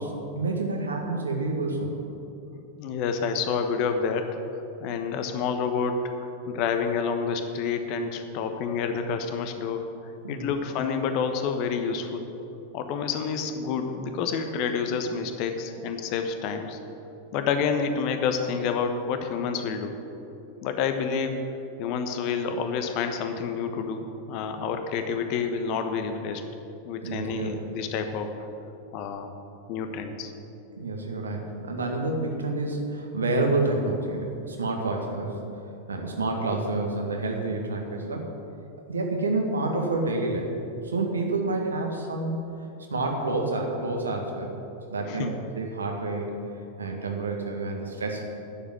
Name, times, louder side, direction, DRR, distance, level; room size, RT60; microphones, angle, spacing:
voice 1, 0.0-2.0 10.2-10.6 27.0-27.5 30.8-35.4 35.9-38.3 38.9-40.5 40.8-42.5 42.9-44.5 44.9-46.3 46.8-48.2, right 2 dB, 75° right, 2 dB, 1.9 m, -28 dB
voice 2, 2.5-4.3 4.8-6.1 6.5-9.8 10.3-12.3 12.7-16.8 17.3-20.0 20.6-21.4 21.8-26.4 26.8-28.5 28.9-29.3 29.7-30.3 45.1-45.3, left 6 dB, 45° left, 6 dB, 1.1 m, -28 dB
9.9 x 7.4 x 9.4 m, 2.9 s
figure-of-eight pair, 90°, 0 cm